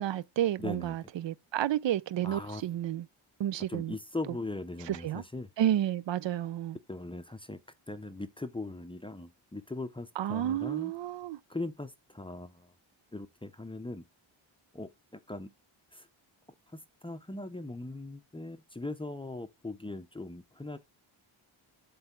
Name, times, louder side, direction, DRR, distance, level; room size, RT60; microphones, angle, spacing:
voice 1, 0.0-3.1 3.4-3.9 4.9-5.2 5.6-6.8 10.2-11.4, right 11 dB, 65° right, 0.6 m, -31 dB
voice 2, 0.6-1.0 2.2-2.6 3.7-5.5 6.9-7.6 7.9-10.9 11.5-12.7 13.1-14.0 14.7-15.5 15.9-16.1 16.7-20.8, left 2 dB, 10° left, 0.6 m, -40 dB
7.9 x 3.3 x 5.9 m
wide cardioid pair, 120°, 48 cm